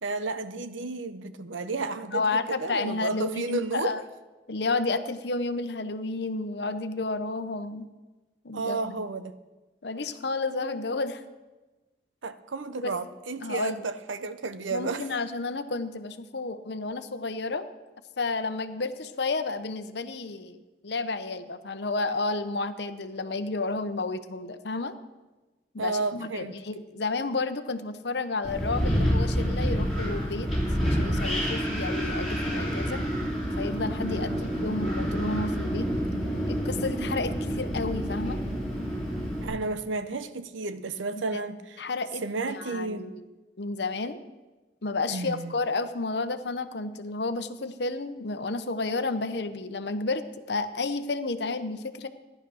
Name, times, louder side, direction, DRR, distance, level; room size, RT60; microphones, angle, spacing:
voice 1, 0.0-3.9 8.5-9.3 12.2-15.0 25.8-26.5 34.1-34.4 39.4-41.8 42.2-43.1 45.1-45.5, right 3 dB, 90° right, 12 dB, 0.8 m, -32 dB
voice 2, 2.1-4.0 4.5-7.9 8.4-9.0 9.8-11.2 12.8-13.0 13.4-13.9 14.7-17.7 18.2-25.0 25.7-30.5 30.8-33.0 33.6-34.3 34.6-35.9 36.5-38.4 41.3-41.4 41.8-43.2 43.6-44.2 44.8-52.1, left 3 dB, 60° left, 10 dB, 0.8 m, -31 dB
Wind, 28.4-39.4, equal, ahead, 3.7 m, -28 dB
14.0 x 10.5 x 6.3 m, 1.2 s
head